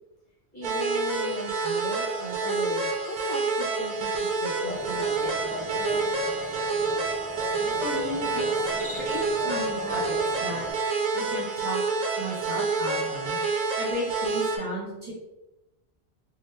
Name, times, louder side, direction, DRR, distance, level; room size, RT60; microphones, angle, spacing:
voice 1, 0.5-6.0, equal, 45° left, -6 dB, 1.1 m, -38 dB
sound 1, 0.6-14.6, right 3 dB, 55° right, 0.6 m, -28 dB
sound 2, 4.6-10.7, left 1 dB, 20° left, 0.8 m, -37 dB
voice 2, 7.8-11.8 12.2-15.1, equal, 30° right, -8 dB, 1.2 m, -35 dB
Cricket, 8.6-9.4, left 1 dB, 5° left, 1.4 m, -42 dB
3.0 x 2.2 x 3.4 m, 0.93 s
omnidirectional pair, 1.1 m